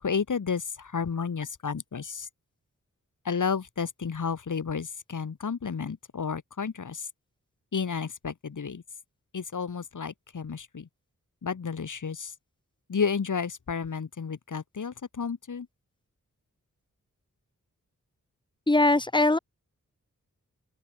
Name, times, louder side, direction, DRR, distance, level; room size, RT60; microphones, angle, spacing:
voice 1, 0.0-2.3 3.3-7.1 7.7-8.8 9.3-10.9 11.4-12.3 12.9-15.7, left 6 dB, 75° left, 3.7 m, -31 dB
voice 2, 18.7-19.4, left 2 dB, 15° left, 1.6 m, -21 dB
open air
wide cardioid pair, 105°, 31 cm